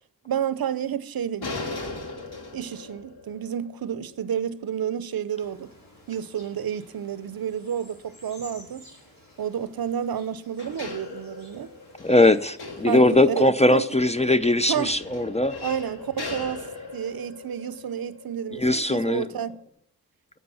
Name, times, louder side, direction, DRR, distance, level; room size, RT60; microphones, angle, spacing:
voice 1, 0.2-1.9 2.5-5.7 6.1-8.9 9.4-11.7 12.8-13.9 14.7-15.0 15.6-16.7 16.9-19.6, right 9 dB, 65° right, 0.6 m, -30 dB
sound 1, 1.4-5.3 10.1-10.2 10.6-19.6, left 3 dB, 75° left, 2.2 m, -39 dB
sound 2, 5.3-13.4, equal, 60° left, 5.0 m, -52 dB
voice 2, 12.0-15.6 18.5-19.3, left 1 dB, 20° left, 0.4 m, -20 dB
10.5 x 7.7 x 6.9 m
wide cardioid pair, 105°, 39 cm